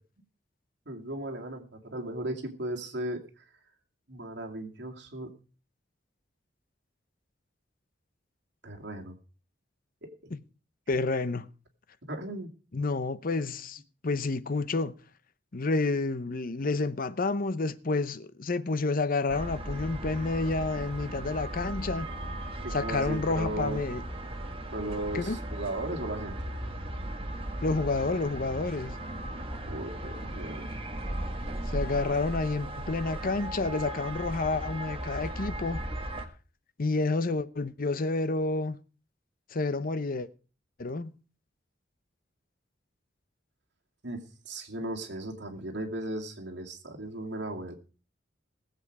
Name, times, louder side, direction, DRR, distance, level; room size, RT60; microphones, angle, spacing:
voice 1, 0.9-3.4 4.1-5.3 8.6-9.2 10.0-10.1 12.0-12.5 22.6-23.9 24.7-26.4 29.6-31.0 44.0-47.7, right 1 dB, 65° right, 2.5 m, -36 dB
voice 2, 10.9-11.5 12.7-14.9 15.5-22.1 22.7-24.0 25.1-25.4 27.6-28.9 31.7-35.8 36.8-38.8 39.5-40.3 40.8-41.2, left 3 dB, 50° left, 0.7 m, -29 dB
sound 1, 19.3-36.3, right 1 dB, 30° right, 1.6 m, -37 dB
19.5 x 7.8 x 4.8 m
head